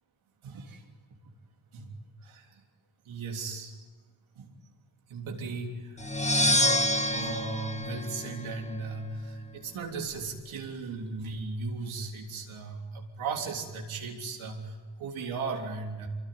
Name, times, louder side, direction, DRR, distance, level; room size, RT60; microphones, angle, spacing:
voice 1, 0.4-0.8 1.7-1.9 2.2-2.6 3.0-3.8 4.3-4.5 5.1-16.1, right 4 dB, 90° right, 1 dB, 3.5 m, -37 dB
sound 1, 6.0-8.8, left 1 dB, 15° left, 1.9 m, -27 dB
26.0 x 23.0 x 9.5 m, 1.4 s
supercardioid pair, 45°, 47 cm